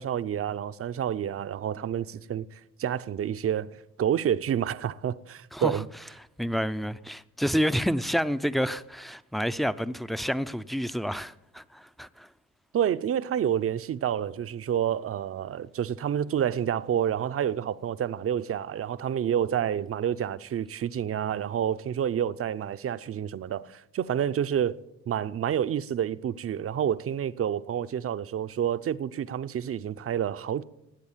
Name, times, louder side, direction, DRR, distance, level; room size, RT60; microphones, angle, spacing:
voice 1, 0.0-5.9 12.7-24.8 25.1-30.6, right 9 dB, 50° right, 0.7 m, -29 dB
voice 2, 5.5-5.8 6.4-12.3, equal, ahead, 0.6 m, -29 dB
19.0 x 8.2 x 7.3 m
cardioid pair, 90°, 30 cm